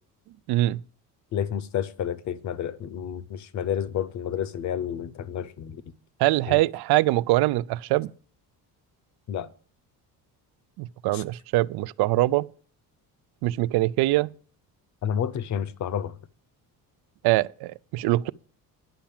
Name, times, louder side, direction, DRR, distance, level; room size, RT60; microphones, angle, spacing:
voice 1, 0.5-0.8 6.2-8.1 10.8-12.5 13.4-14.3 17.2-18.3, right 18 dB, 85° right, 0.5 m, -23 dB
voice 2, 1.3-5.8 6.5-6.6 9.3-9.5 11.1-11.2 15.0-16.1, left 9 dB, 50° left, 0.7 m, -30 dB
10.5 x 5.9 x 7.2 m
cardioid pair, 160°, 37 cm